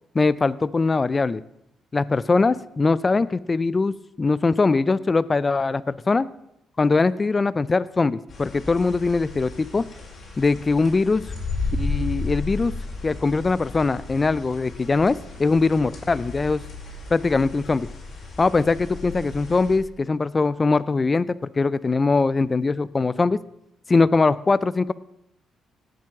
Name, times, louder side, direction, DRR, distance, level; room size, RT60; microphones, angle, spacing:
voice 1, 0.1-1.4 1.9-6.3 6.8-9.9 10.4-11.2 11.8-12.7 13.0-16.6 17.1-17.9 18.4-23.4 23.9-24.9, left 3 dB, 30° left, 18 dB, 0.5 m, -21 dB
sound 1, 8.3-19.8, left 3 dB, 45° left, 4.7 m, -34 dB
17.5 x 7.6 x 5.9 m, 0.83 s
cardioid pair, 90°, 0 cm